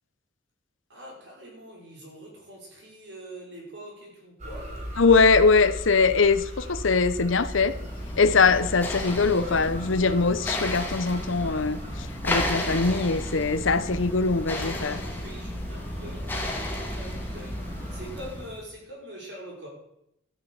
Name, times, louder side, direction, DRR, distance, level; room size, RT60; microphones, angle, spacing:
voice 1, 0.9-4.8 9.0-9.6 14.9-19.7, equal, 60° right, 5.7 m, -43 dB
sound 1, 4.4-18.1, equal, 35° right, 3.2 m, -37 dB
voice 2, 5.0-7.8 8.2-15.0, left 4 dB, 80° left, 0.8 m, -22 dB
sound 2, 7.1-18.6, left 1 dB, 10° left, 2.0 m, -34 dB
12.5 x 7.4 x 8.0 m
head